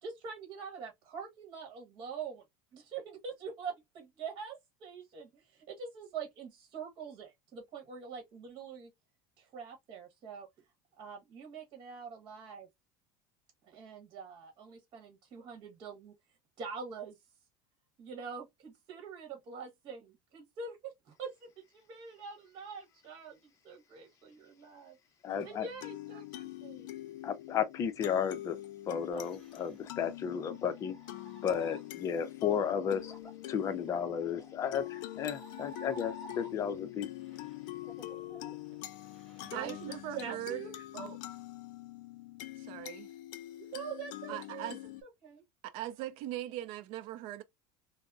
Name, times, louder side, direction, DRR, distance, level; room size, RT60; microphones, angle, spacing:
voice 1, 0.0-2.4 2.7-8.9 9.4-10.5 11.0-12.7 13.7-16.1 16.6-17.2 18.0-25.0 25.4-26.9 39.4-40.8 43.6-44.7 45.0-45.4, right 6 dB, 45° right, 1.1 m, -44 dB
voice 2, 25.2-25.7 27.2-28.6 28.9-31.0 31.4-33.1 33.5-37.1, left 8 dB, 30° left, 0.5 m, -33 dB
sound 1, 25.3-45.0, left 15 dB, 85° left, 0.5 m, -45 dB
sound 2, 29.1-36.9 37.2-40.2, right 1 dB, 5° left, 1.9 m, -53 dB
voice 3, 39.5-40.6 40.9-41.2 42.6-43.1 44.3-44.8 45.6-47.4, right 13 dB, 60° right, 0.5 m, -40 dB
3.5 x 2.0 x 2.4 m
supercardioid pair, 145°, 10 cm